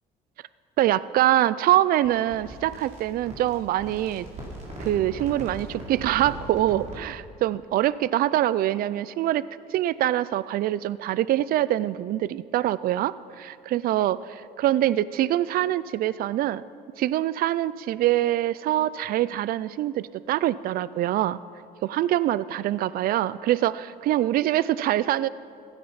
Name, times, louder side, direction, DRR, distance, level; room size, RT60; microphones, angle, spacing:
voice 1, 0.8-4.3 4.8-9.4 9.7-16.6 17.0-21.4 21.8-25.3, right 13 dB, 60° right, 18 dB, 0.4 m, -24 dB
sound 1, 2.0-7.1, right 1 dB, 45° right, 4.0 m, -40 dB
16.0 x 13.0 x 5.7 m, 2.5 s
cardioid pair, 110°, 17 cm